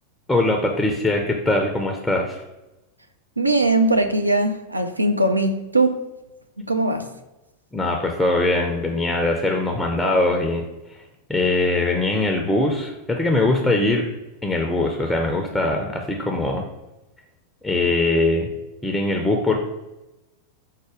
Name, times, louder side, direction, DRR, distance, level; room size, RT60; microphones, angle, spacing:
voice 1, 0.3-2.4 7.7-10.6 10.9-11.0 11.3-14.1 14.4-16.6 17.6-18.5 18.8-19.6, left 2 dB, 5° left, 2 dB, 0.5 m, -21 dB
voice 2, 3.4-6.0 6.6-7.1, right 2 dB, 85° right, 6 dB, 0.4 m, -20 dB
4.7 x 2.2 x 4.8 m, 1.0 s
figure-of-eight pair, 90°, 0 cm